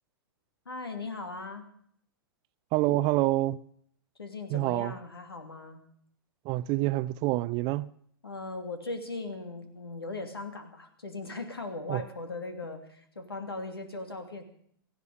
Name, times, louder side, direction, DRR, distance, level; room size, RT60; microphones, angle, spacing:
voice 1, 0.6-1.7 4.2-5.8 8.2-14.4, left 3 dB, 80° left, 2.8 m, -38 dB
voice 2, 2.7-3.6 4.5-4.9 6.4-7.9 11.9-12.0, right 17 dB, 35° right, 0.6 m, -27 dB
18.0 x 15.5 x 5.0 m
figure-of-eight pair, 105°, 12 cm